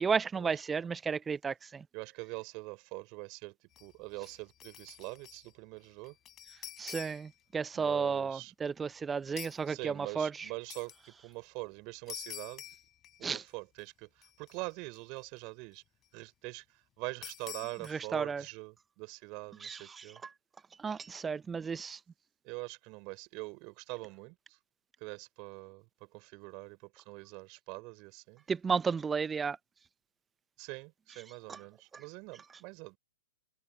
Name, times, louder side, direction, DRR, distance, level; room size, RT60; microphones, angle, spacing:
voice 1, 0.0-1.8 6.8-10.3 13.2-13.4 17.9-18.4 19.6-20.0 20.8-22.0 28.5-29.6 31.5-31.6 31.9-32.0, right 5 dB, 10° right, 1.0 m, -33 dB
voice 2, 1.9-6.2 7.7-8.5 9.7-12.6 13.2-15.8 16.1-20.2 22.4-24.6 25.0-28.4 30.6-33.0, right 29 dB, 35° right, 4.7 m, -44 dB
sound 1, 3.7-3.9 4.2-5.5 5.8-7.4 9.4-9.6 10.7-11.0 12.1-13.5 13.8-13.9 14.2-15.0 17.2-17.9, left 12 dB, 20° left, 4.1 m, -47 dB
figure-of-eight pair, 115°, 0 cm